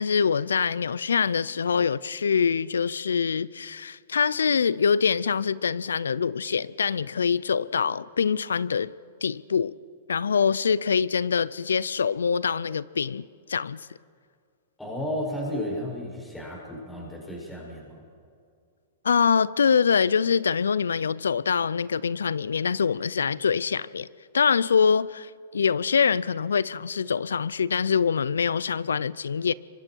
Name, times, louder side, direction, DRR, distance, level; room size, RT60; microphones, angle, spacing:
voice 1, 0.0-8.9 9.2-9.7 10.1-13.8 19.0-24.1 24.3-29.5, left 6 dB, 85° left, 0.5 m, -24 dB
voice 2, 14.8-18.0, left 1 dB, 5° left, 6.6 m, -33 dB
28.0 x 24.0 x 4.6 m
hypercardioid pair, 120°, 0 cm